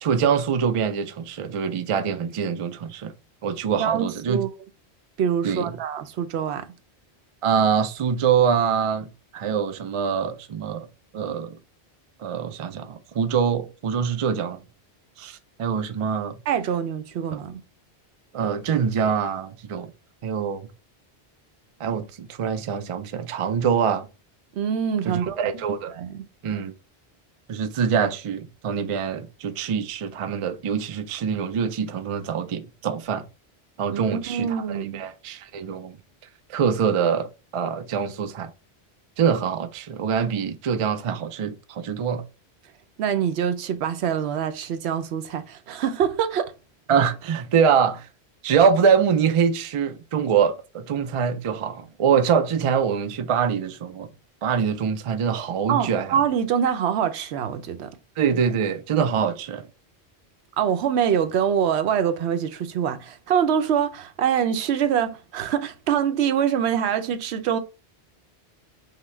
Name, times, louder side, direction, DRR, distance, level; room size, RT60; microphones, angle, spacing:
voice 1, 0.0-3.1 3.4-4.4 5.4-5.7 7.4-10.9 11.1-11.6 12.2-14.6 15.2-16.4 18.3-19.9 20.2-20.7 21.8-24.1 25.0-25.9 26.4-26.7 27.5-33.2 33.8-36.0 36.5-38.5 39.2-42.2 46.9-48.1 48.4-54.1 54.4-56.1 58.2-59.7, right 7 dB, 60° right, 0.3 m, -24 dB
voice 2, 3.8-4.5 5.2-6.7 16.5-17.6 24.5-25.5 25.9-26.2 33.9-35.0 43.0-46.5 55.7-57.9 60.6-67.6, right 8 dB, 85° right, 0.9 m, -24 dB
5.7 x 2.2 x 3.1 m
omnidirectional pair, 1.1 m